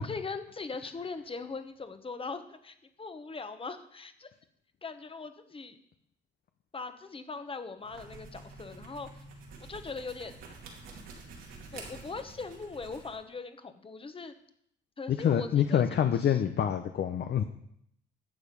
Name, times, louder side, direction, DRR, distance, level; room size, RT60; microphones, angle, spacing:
voice 1, 0.0-4.3 4.8-5.8 6.7-9.2 9.6-10.3 11.7-14.3 15.0-16.4, left 4 dB, 25° left, 9 dB, 1.1 m, -40 dB
sound 1, 7.8-13.2, right 3 dB, 90° right, 2.6 m, -48 dB
voice 2, 15.1-17.4, left 9 dB, 55° left, 7 dB, 0.8 m, -26 dB
11.0 x 7.2 x 5.4 m, 0.72 s
cardioid pair, 90°, 20 cm